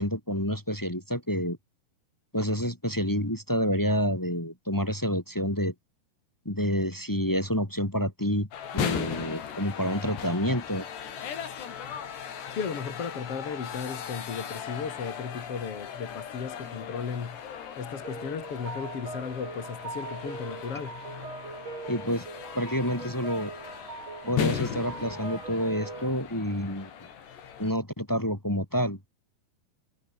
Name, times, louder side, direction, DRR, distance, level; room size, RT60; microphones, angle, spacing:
voice 1, 0.0-1.6 2.3-5.7 6.4-8.5 8.7-10.8 21.9-22.2 22.5-23.5 24.3-26.9 27.6-29.1, equal, 10° left, 1.1 m, -28 dB
sound 1, 8.5-27.7, left 8 dB, 70° left, 5.5 m, -37 dB
voice 2, 12.5-17.4 17.8-21.0, left 6 dB, 40° left, 3.0 m, -35 dB
sound 2, 18.0-26.1, right 3 dB, 35° right, 8.0 m, -41 dB
omnidirectional pair, 5.0 m